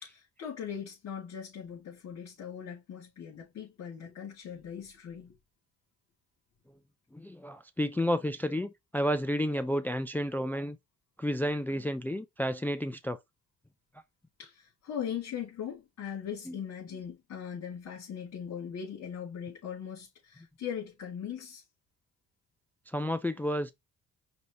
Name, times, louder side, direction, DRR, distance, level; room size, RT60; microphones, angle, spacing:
voice 1, 0.0-5.3 14.4-21.6, left 8 dB, 65° left, 2.4 m, -40 dB
voice 2, 7.1-10.8 11.2-13.2 16.5-16.6 22.9-23.7, equal, 5° left, 0.3 m, -31 dB
5.2 x 2.8 x 3.0 m
cardioid pair, 90°, 30 cm